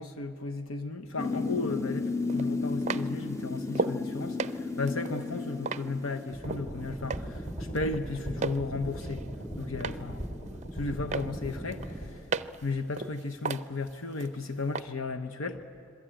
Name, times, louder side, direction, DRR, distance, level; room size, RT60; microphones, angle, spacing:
voice 1, 0.0-9.2 9.6-10.2 10.7-12.2 12.6-15.6, left 3 dB, 75° left, 7 dB, 0.9 m, -34 dB
sound 1, 1.2-6.4, left 3 dB, 15° left, 0.6 m, -33 dB
sound 2, 1.3-1.4 2.3-4.0 4.4-6.7 7.1-7.5 7.7-8.7 9.0-10.1 10.5-10.8 11.1-12.7 13.0-14.3 14.7-14.8, right 4 dB, 35° right, 0.5 m, -35 dB
sound 3, 6.3-12.1, equal, 30° left, 6.5 m, -38 dB
26.5 x 22.0 x 9.0 m, 2.7 s
head